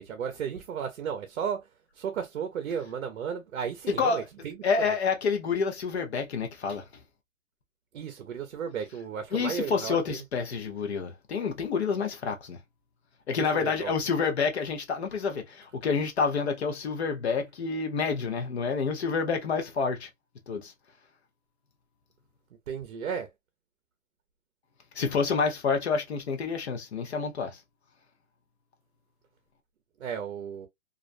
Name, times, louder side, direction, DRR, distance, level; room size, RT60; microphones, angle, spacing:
voice 1, 0.0-1.6 2.0-4.9 7.9-10.2 13.4-13.9 22.7-23.3 30.0-30.7, right 7 dB, 60° right, 0.6 m, -34 dB
voice 2, 3.9-4.2 4.6-6.8 9.3-12.6 13.3-20.1 20.5-20.7 24.9-27.6, left 5 dB, 50° left, 0.6 m, -28 dB
2.4 x 2.1 x 2.4 m
hypercardioid pair, 165°, 42 cm